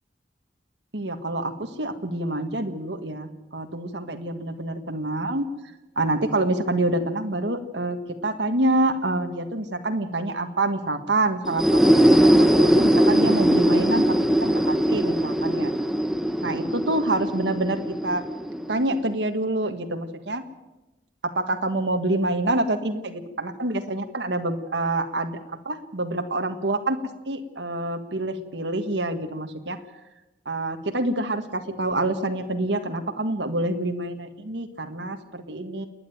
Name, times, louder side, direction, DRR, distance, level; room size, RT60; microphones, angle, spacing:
voice 1, 0.9-5.5 5.9-14.1 14.4-15.7 16.4-18.2 18.7-20.4 21.2-27.0 27.2-29.8 30.4-35.9, right 2 dB, 75° right, 6 dB, 1.6 m, -27 dB
sound 1, 11.4-19.1, equal, ahead, 0.9 m, -20 dB
29.0 x 10.0 x 9.3 m, 1.0 s
head